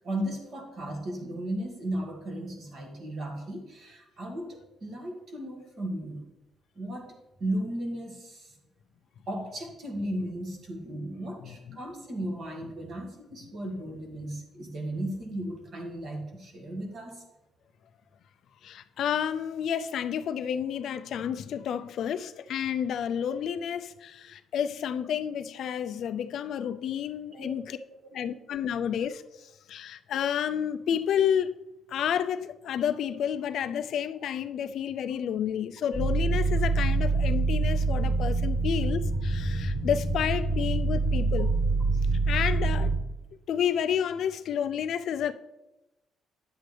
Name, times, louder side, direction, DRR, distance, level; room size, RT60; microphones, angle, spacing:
voice 1, 0.0-6.3 6.8-7.1 7.4-8.6 9.3-17.2 27.3-27.5, right 1 dB, 40° right, 1.9 m, -35 dB
voice 2, 11.4-11.8 18.6-27.8 28.1-29.2 29.7-31.5 31.9-41.5 42.3-42.9 43.5-45.3, left 8 dB, 55° left, 0.4 m, -30 dB
sound 1, 35.9-43.0, right 3 dB, 10° right, 2.4 m, -26 dB
10.0 x 7.7 x 3.3 m
cardioid pair, 165°, 0 cm